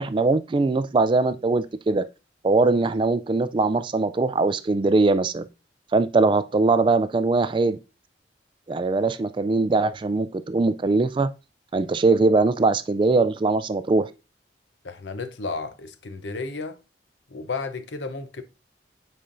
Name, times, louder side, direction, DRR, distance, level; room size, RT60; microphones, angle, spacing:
voice 1, 0.0-2.0 2.4-5.4 5.9-7.8 8.7-11.3 11.7-14.1, right 3 dB, 30° right, 0.3 m, -21 dB
voice 2, 14.8-16.8 17.3-18.4, left 3 dB, 90° left, 0.7 m, -33 dB
8.7 x 4.3 x 2.6 m
head